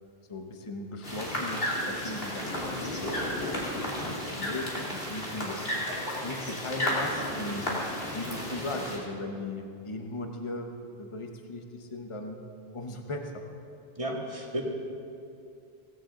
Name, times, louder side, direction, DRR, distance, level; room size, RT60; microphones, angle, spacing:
voice 1, 0.3-5.7 6.2-7.7 8.1-10.7 11.0-12.4 12.7-13.5, left 2 dB, 30° left, 3 dB, 1.1 m, -38 dB
sound 1, 1.0-9.0, left 1 dB, 60° left, 3.1 m, -33 dB
voice 2, 14.0-14.6, right 1 dB, 30° right, -1 dB, 2.1 m, -33 dB
17.5 x 16.5 x 3.9 m, 2.5 s
omnidirectional pair, 1.1 m